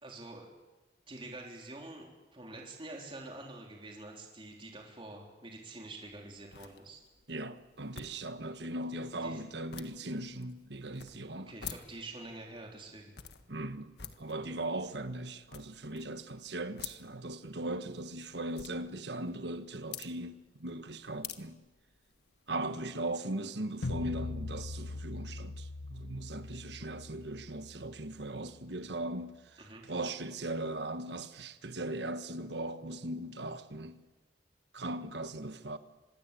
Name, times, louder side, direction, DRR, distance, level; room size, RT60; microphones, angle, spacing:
voice 1, 0.0-0.5 1.1-7.0 9.2-9.4 11.5-13.1 29.6-29.8, right 2 dB, 30° right, 3.7 m, -47 dB
sound 1, 6.0-22.5, left 9 dB, 70° left, 1.5 m, -51 dB
voice 2, 7.3-11.5 13.5-21.6 22.5-34.0 34.7-35.8, right 1 dB, 75° right, 1.4 m, -39 dB
sound 2, 23.8-28.9, left 2 dB, 85° left, 0.9 m, -42 dB
25.5 x 21.0 x 8.5 m
head